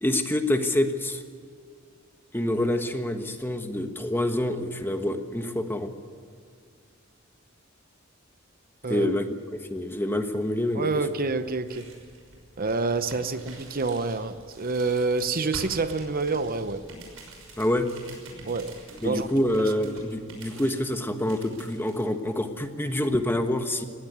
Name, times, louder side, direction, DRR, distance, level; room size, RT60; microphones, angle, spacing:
voice 1, 0.0-1.2 2.3-5.9 8.9-9.3 9.7-10.9 17.6-17.9 19.0-23.8, left 1 dB, 10° left, 1.3 m, -26 dB
voice 2, 10.7-11.9 12.6-16.8 18.4-19.3, right 3 dB, 45° right, 0.8 m, -27 dB
sound 1, 11.2-22.0, right 2 dB, 85° right, 5.9 m, -47 dB
20.0 x 16.5 x 9.4 m
head